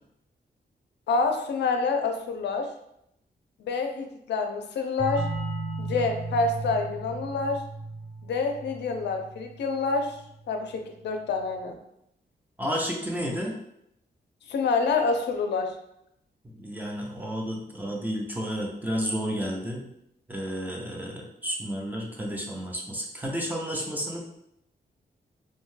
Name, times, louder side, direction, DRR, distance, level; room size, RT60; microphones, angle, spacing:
voice 1, 1.1-2.7 3.6-5.3 5.8-7.6 8.2-10.2 10.5-11.8 14.5-15.7, left 4 dB, 85° left, 4 dB, 0.4 m, -27 dB
sound 1, 5.0-10.4, right 2 dB, 85° right, 1.3 m, -36 dB
voice 2, 12.6-13.5 16.6-19.9 20.3-24.2, equal, 10° right, -1 dB, 0.4 m, -31 dB
2.6 x 2.2 x 3.1 m, 0.77 s
wide cardioid pair, 175°, 17 cm